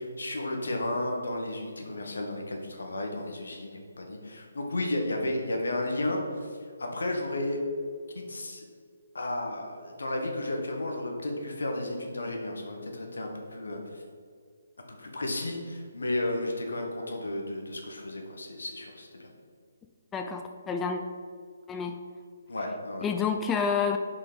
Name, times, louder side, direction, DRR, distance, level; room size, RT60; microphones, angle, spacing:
voice 1, 0.0-6.5 6.8-7.6 8.1-8.6 9.1-14.0 14.9-19.3 22.5-23.1, left 1 dB, 85° left, 2 dB, 1.4 m, -33 dB
voice 2, 20.1-21.0 21.7-22.0 23.0-24.0, left 6 dB, 10° left, 4 dB, 0.3 m, -29 dB
5.5 x 4.2 x 5.1 m, 2.1 s
hypercardioid pair, 160°, 0 cm